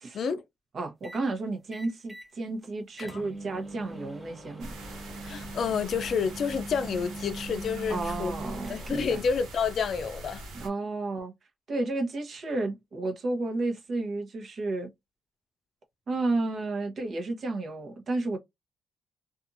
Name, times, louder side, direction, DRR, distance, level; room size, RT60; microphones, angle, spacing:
voice 1, 0.1-0.4 3.0-3.2 5.2-8.3 8.7-10.4, left 6 dB, 60° left, 0.5 m, -29 dB
voice 2, 0.7-4.8 7.9-9.2 10.5-11.3 11.7-14.9 16.1-18.4, right 2 dB, 50° right, 0.9 m, -32 dB
sound 1, 1.0-1.3 1.7-2.3 2.6-2.7 3.0-9.3, right 2 dB, 20° right, 0.8 m, -41 dB
sound 2, 4.6-10.7, right 1 dB, 85° right, 1.0 m, -43 dB
2.6 x 2.4 x 2.6 m
cardioid pair, 90°, 0 cm